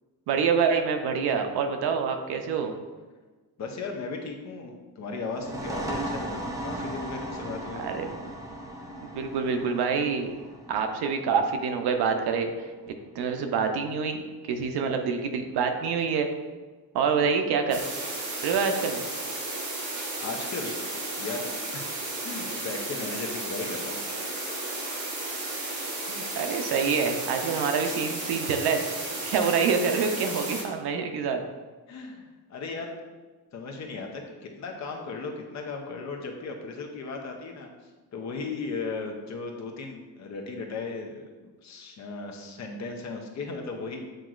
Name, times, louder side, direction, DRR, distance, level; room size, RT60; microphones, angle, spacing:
voice 1, 0.3-2.7 7.8-8.1 9.1-10.3 10.7-12.5 13.1-14.2 14.5-16.3 16.9-17.8 18.4-19.0 26.1-31.4, right 6 dB, 85° right, 5 dB, 0.6 m, -26 dB
voice 2, 3.6-7.9 20.2-20.7 21.2-21.8 22.2-24.0 31.9-33.0 33.5-37.7 38.1-41.2 41.6-44.0, left 4 dB, 45° left, 2 dB, 0.6 m, -36 dB
sound 1, 5.3-12.7, right 1 dB, 10° right, 0.3 m, -37 dB
sound 2, 17.7-30.6, right 2 dB, 50° right, 1.1 m, -33 dB
7.5 x 2.9 x 2.4 m, 1.3 s
cardioid pair, 175°, 38 cm